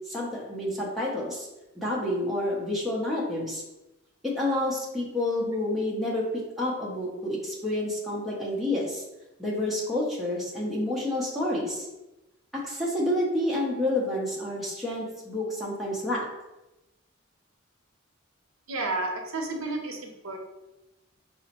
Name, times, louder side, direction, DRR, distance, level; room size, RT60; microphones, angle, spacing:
voice 1, 0.1-1.5 1.8-3.6 4.2-9.0 9.4-11.9 12.5-16.3, left 1 dB, ahead, -5 dB, 0.7 m, -29 dB
voice 2, 18.7-20.4, right 2 dB, 80° right, 3 dB, 0.6 m, -31 dB
4.7 x 2.0 x 2.9 m, 0.99 s
head